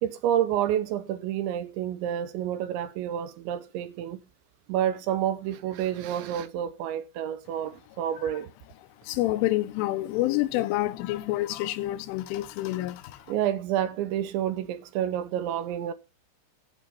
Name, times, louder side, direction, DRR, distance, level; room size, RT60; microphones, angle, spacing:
voice 1, 0.0-4.2 4.7-8.5 13.3-15.9, right 10 dB, 80° right, 2.8 m, -29 dB
voice 2, 9.1-13.2, left 16 dB, 80° left, 3.3 m, -28 dB
15.5 x 6.8 x 5.5 m
omnidirectional pair, 5.7 m